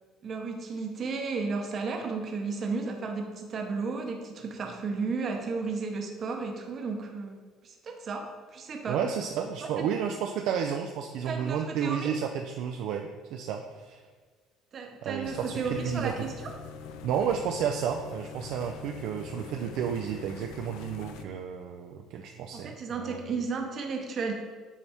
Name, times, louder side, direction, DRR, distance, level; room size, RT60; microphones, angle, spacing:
voice 1, 0.2-9.0 9.6-9.9 11.2-12.1 14.7-16.3 22.5-24.3, right 4 dB, 40° right, 3 dB, 0.8 m, -33 dB
voice 2, 8.9-14.0 15.0-16.3 17.0-23.2, right 8 dB, 70° right, 4 dB, 0.4 m, -32 dB
sound 1, 15.2-21.2, left 6 dB, 80° left, 0.4 m, -43 dB
7.2 x 4.1 x 3.4 m, 1.5 s
cardioid pair, 135°, 0 cm